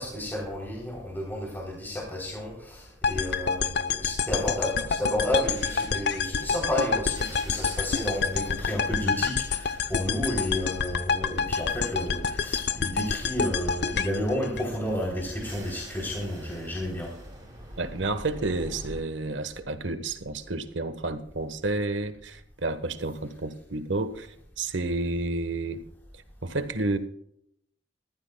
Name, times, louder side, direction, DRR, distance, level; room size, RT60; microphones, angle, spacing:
voice 1, 0.0-17.1, left 1 dB, 10° left, -2 dB, 3.3 m, -31 dB
sound 1, 3.0-15.2, left 5 dB, 60° left, 0.7 m, -28 dB
sound 2, 4.4-19.0, equal, 20° right, 6.0 m, -46 dB
voice 2, 17.8-25.8 26.4-27.0, right 2 dB, 80° right, 10 dB, 1.3 m, -30 dB
23.0 x 14.5 x 2.3 m, 0.72 s
head